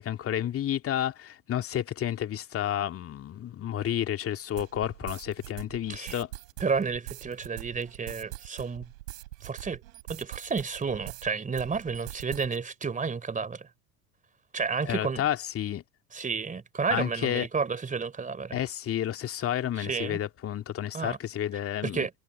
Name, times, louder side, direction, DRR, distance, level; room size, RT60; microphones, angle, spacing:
voice 1, 0.0-6.3 14.9-15.8 16.9-17.5 18.5-22.1, left 11 dB, 30° left, 2.4 m, -31 dB
sound 1, 4.6-11.3 11.6-12.6, right 18 dB, 60° right, 7.4 m, -43 dB
voice 2, 6.6-8.9 9.4-9.8 10.1-13.7 14.5-15.2 16.1-18.6 19.8-20.2 20.9-21.2 21.8-22.1, right 5 dB, 15° right, 3.8 m, -31 dB
figure-of-eight pair, 75°, 45 cm